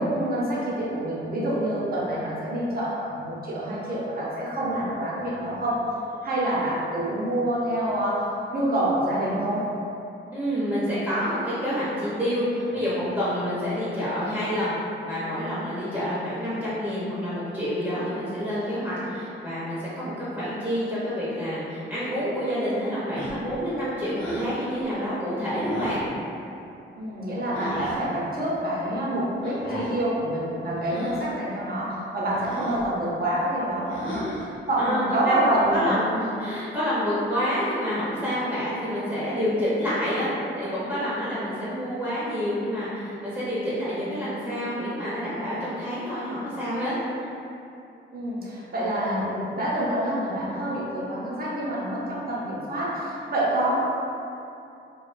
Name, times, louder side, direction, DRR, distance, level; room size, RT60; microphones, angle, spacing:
voice 1, 0.0-5.8 6.2-9.7 27.0-35.9 48.1-53.8, right 1 dB, 45° right, -7 dB, 0.7 m, -27 dB
voice 2, 10.3-14.8 15.0-26.0 32.6-32.8 34.8-35.3 35.7-40.3 40.6-46.9 47.2-47.3, equal, 5° right, -12 dB, 0.7 m, -28 dB
sound 1, 23.1-23.6 24.1-24.5 25.6-26.1 27.5-28.0 29.4-30.0 30.8-31.3 32.3-32.9 33.9-34.6, equal, 70° left, 0.7 m, -35 dB
2.3 x 2.2 x 2.4 m, 2.7 s
cardioid pair, 70°, 21 cm